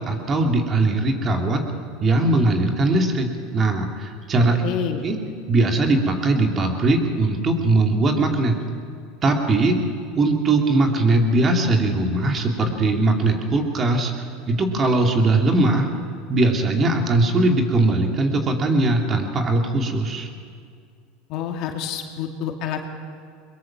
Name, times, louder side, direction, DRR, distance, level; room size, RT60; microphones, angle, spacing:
voice 1, 0.0-1.6 2.0-4.6 5.0-5.2 5.5-8.6 9.2-9.8 10.2-15.9 16.3-20.3, right 2 dB, 30° right, 3 dB, 2.8 m, -20 dB
voice 2, 4.6-5.0 21.3-22.9, left 8 dB, 60° left, 3 dB, 2.4 m, -28 dB
22.5 x 22.0 x 6.2 m, 2.3 s
supercardioid pair, 110°, 0 cm